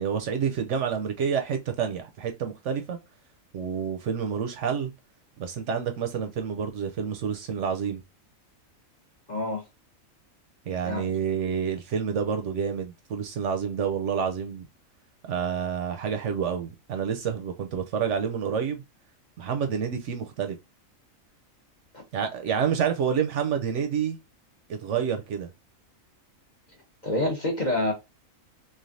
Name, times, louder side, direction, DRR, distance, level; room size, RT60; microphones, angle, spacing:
voice 1, 0.0-3.0 3.5-4.9 5.4-8.0 10.7-14.7 15.2-18.8 19.4-20.6 22.1-24.2 24.7-25.5, right 7 dB, 70° right, 0.8 m, -28 dB
voice 2, 9.3-9.7 10.8-11.1 21.9-22.0 27.0-27.9, left 1 dB, 40° left, 0.8 m, -27 dB
3.2 x 2.4 x 2.5 m
omnidirectional pair, 1.4 m